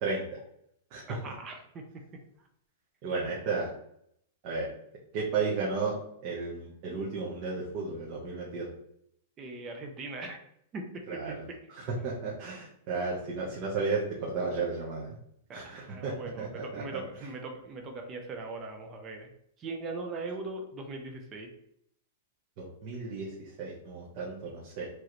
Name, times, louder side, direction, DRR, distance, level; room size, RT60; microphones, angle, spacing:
voice 1, 0.0-0.4 0.9-1.2 3.0-3.7 4.4-4.7 5.1-6.0 6.2-8.7 11.1-15.2 15.5-17.0 22.6-24.9, right 4 dB, 35° right, -4 dB, 0.9 m, -33 dB
voice 2, 1.1-2.0 9.4-10.4 10.7-11.6 15.5-19.3 19.6-21.5, right 3 dB, 20° right, 4 dB, 0.5 m, -40 dB
4.9 x 3.0 x 3.0 m, 0.72 s
supercardioid pair, 170°, 0 cm